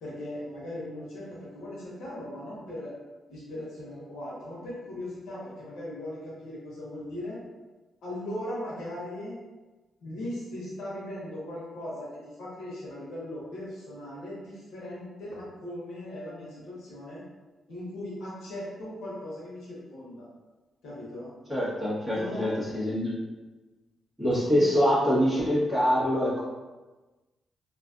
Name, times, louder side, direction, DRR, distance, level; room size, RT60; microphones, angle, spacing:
voice 1, 0.0-2.9 3.3-7.4 8.0-9.4 10.0-12.1 12.4-17.2 17.7-20.3 20.8-21.3 22.1-22.5 24.3-24.6, left 1 dB, 90° left, -7 dB, 0.7 m, -38 dB
voice 2, 21.5-23.2 24.2-26.4, equal, 5° right, -10 dB, 1.2 m, -25 dB
2.5 x 2.3 x 2.5 m, 1.2 s
cardioid pair, 95°, 0 cm